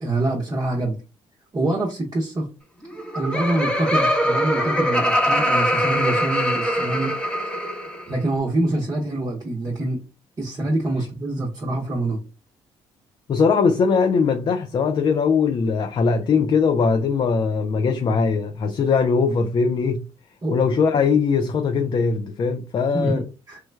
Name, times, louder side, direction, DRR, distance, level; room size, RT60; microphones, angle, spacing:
voice 1, 0.0-0.9 1.5-2.5 3.1-7.2 8.1-10.0 10.4-12.2 20.4-20.6 22.9-23.6, right 2 dB, 30° right, 0.9 m, -25 dB
Laughter, 2.8-8.1, equal, 10° left, 0.9 m, -22 dB
voice 2, 13.3-20.1 20.5-23.2, left 5 dB, 45° left, 0.4 m, -20 dB
3.2 x 2.2 x 3.2 m
supercardioid pair, 80°, 11 cm